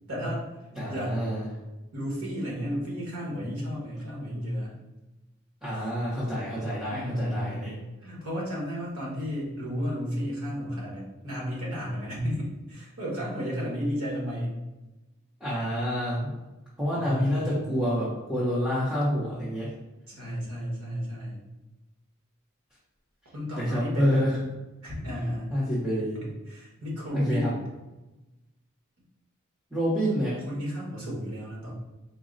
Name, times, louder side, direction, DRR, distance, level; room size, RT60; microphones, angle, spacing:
voice 1, 0.1-0.4 0.9-1.4 1.9-4.8 6.9-14.6 16.9-17.7 20.1-21.4 23.3-24.2 24.8-25.6 26.2-27.6 30.5-31.7, equal, 85° right, -4 dB, 1.3 m, -33 dB
voice 2, 0.7-1.4 5.6-7.7 15.4-16.3 16.8-19.7 23.6-24.3 25.5-26.2 27.1-27.5 29.7-30.4, equal, 5° right, -9 dB, 0.7 m, -27 dB
3.9 x 2.0 x 3.8 m, 1.0 s
head